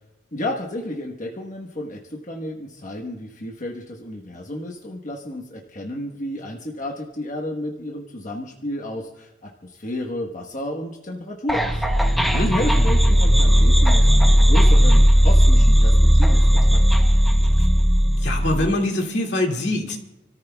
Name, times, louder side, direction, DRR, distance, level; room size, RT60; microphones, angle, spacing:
voice 1, 0.3-11.8 12.4-15.9 16.2-17.1, left 1 dB, 40° left, -1 dB, 1.2 m, -32 dB
sound 1, 11.5-18.7, equal, ahead, 0.8 m, -15 dB
voice 2, 12.2-12.5 18.2-20.0, left 1 dB, 65° left, 1 dB, 2.2 m, -24 dB
29.0 x 14.0 x 2.3 m, 0.95 s
head